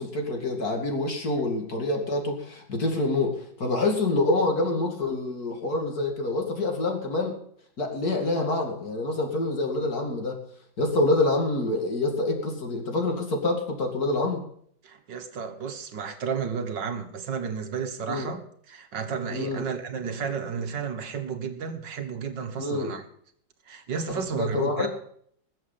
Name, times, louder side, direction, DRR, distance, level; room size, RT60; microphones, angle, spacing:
voice 1, 0.0-7.4 7.8-10.4 10.8-14.4 18.1-18.3 19.3-19.6 22.6-22.9 24.3-24.9, left 2 dB, 50° left, 3 dB, 3.0 m, -26 dB
voice 2, 14.8-18.4 18.7-23.0 23.7-24.9, right 6 dB, 65° right, 7 dB, 1.9 m, -32 dB
21.0 x 7.6 x 5.7 m, 0.63 s
omnidirectional pair, 2.1 m